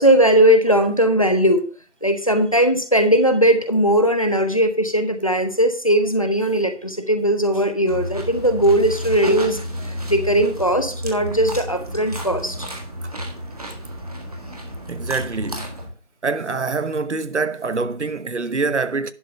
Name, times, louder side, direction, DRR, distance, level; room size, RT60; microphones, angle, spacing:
voice 1, 0.0-1.6 2.0-12.7, right 1 dB, 30° left, 0.8 m, -18 dB
sound 1, 7.9-15.9, equal, 30° right, 1.7 m, -31 dB
voice 2, 14.9-15.7 16.2-19.1, right 4 dB, 80° right, 1.1 m, -25 dB
11.0 x 4.1 x 6.7 m
figure-of-eight pair, 180°, 35 cm